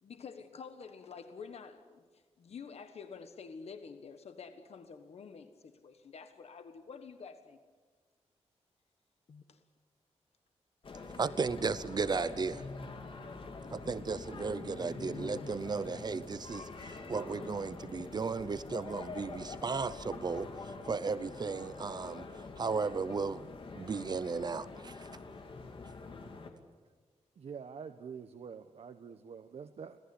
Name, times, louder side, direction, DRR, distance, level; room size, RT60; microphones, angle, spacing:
voice 1, 0.0-7.6 9.3-9.6, left 5 dB, 65° left, 8 dB, 1.4 m, -49 dB
sound 1, 10.8-26.5, left 3 dB, 50° left, 2.5 m, -45 dB
voice 2, 11.2-12.6 13.7-22.3 22.6-23.4 23.8-25.1, right 4 dB, 40° right, 15 dB, 0.7 m, -35 dB
voice 3, 27.4-30.0, right 6 dB, 65° right, 8 dB, 1.0 m, -46 dB
25.5 x 17.5 x 10.0 m, 1.5 s
wide cardioid pair, 170°, 11 cm